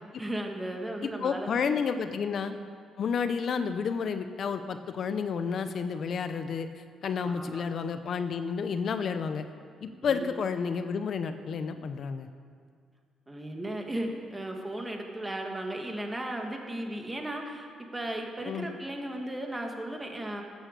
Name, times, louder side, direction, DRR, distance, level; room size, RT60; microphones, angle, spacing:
voice 1, 0.2-1.8 2.1-2.2 5.1-5.3 7.2-7.8 10.0-10.3 13.3-17.7 17.9-20.4, right 1 dB, 15° right, 2 dB, 2.0 m, -36 dB
voice 2, 1.0-2.6 3.0-6.7 7.0-9.4 9.8-12.3 18.5-18.7, left 6 dB, 60° left, 10 dB, 0.7 m, -31 dB
13.5 x 9.2 x 6.7 m, 2.1 s
cardioid pair, 90°, 0 cm